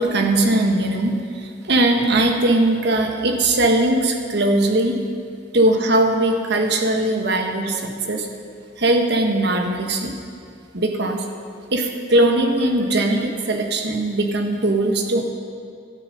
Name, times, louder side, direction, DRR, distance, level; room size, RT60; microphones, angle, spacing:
voice 1, 0.0-5.0 5.5-8.3 8.8-10.1 10.7-11.2 11.7-15.2, right 2 dB, 60° right, 3 dB, 1.3 m, -20 dB
12.5 x 11.0 x 5.4 m, 2.3 s
head